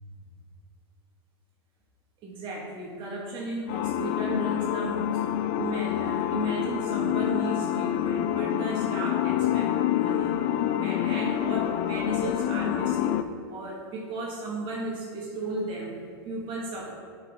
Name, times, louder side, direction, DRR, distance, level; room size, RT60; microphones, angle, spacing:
voice 1, 2.2-5.3 5.6-10.4 10.8-13.2 13.5-16.0 16.2-16.9, right 2 dB, 40° right, -3 dB, 1.7 m, -35 dB
sound 1, 3.7-13.2, left 11 dB, 50° left, 0.5 m, -27 dB
9.7 x 5.4 x 3.7 m, 2.1 s
hypercardioid pair, 120°, 13 cm